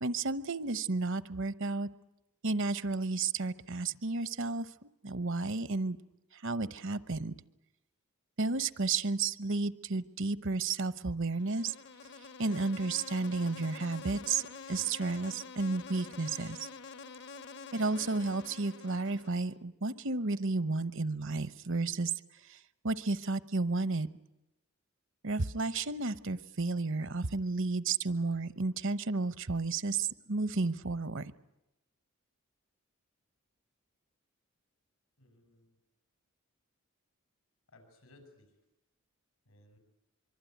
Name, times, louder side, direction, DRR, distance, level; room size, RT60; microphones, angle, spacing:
voice 1, 0.0-1.9 2.4-4.7 5.0-6.0 6.3-7.3 8.4-11.7 12.4-16.7 17.7-22.1 22.4-22.6 22.8-24.1 25.2-31.3, right 3 dB, 60° right, 15 dB, 0.9 m, -32 dB
Insect, 11.3-19.6, left 4 dB, 55° left, 0.9 m, -48 dB
voice 2, 35.2-35.8 37.7-38.5 39.5-39.8, left 2 dB, 90° left, 6 dB, 7.0 m, -60 dB
24.0 x 24.0 x 9.3 m, 0.93 s
head